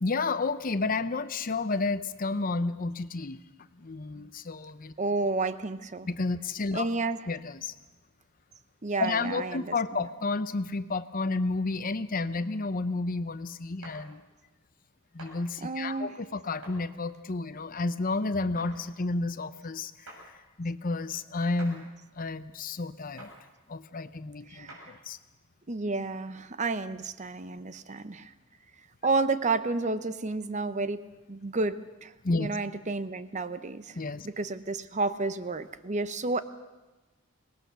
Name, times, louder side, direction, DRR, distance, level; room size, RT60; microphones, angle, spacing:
voice 1, 0.0-3.4 3.8-4.9 6.1-6.9 7.3-7.7 9.0-14.2 15.1-20.3 20.6-21.9 22.1-23.3 23.7-25.2 32.2-32.5 33.9-34.3, left 3 dB, 40° left, 13 dB, 0.7 m, -31 dB
voice 2, 5.0-6.1 6.7-7.2 8.8-9.7 15.6-16.1 24.5-24.9 25.7-28.3 29.0-32.1 32.4-34.0 34.2-36.4, right 3 dB, 35° right, 13 dB, 0.7 m, -31 dB
sound 1, 13.8-14.0 15.2-15.3 16.6-16.8 18.6-18.7 20.1-20.2 21.6-21.8 23.2-23.3 24.7-24.9, right 2 dB, 85° right, 7.0 m, -46 dB
24.5 x 19.5 x 6.8 m, 1.1 s
head